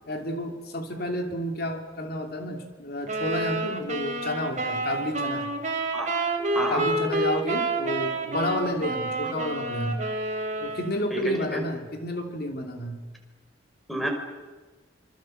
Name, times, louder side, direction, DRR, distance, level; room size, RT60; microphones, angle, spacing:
voice 1, 0.1-5.5 6.7-10.0 10.6-13.0, left 1 dB, 55° left, 4 dB, 2.9 m, -31 dB
sound 1, 3.1-11.1, right 2 dB, 40° right, 3.9 m, -29 dB
voice 2, 11.1-11.6 13.9-14.1, right 1 dB, ahead, 2 dB, 5.4 m, -29 dB
27.0 x 26.0 x 7.9 m, 1.3 s
head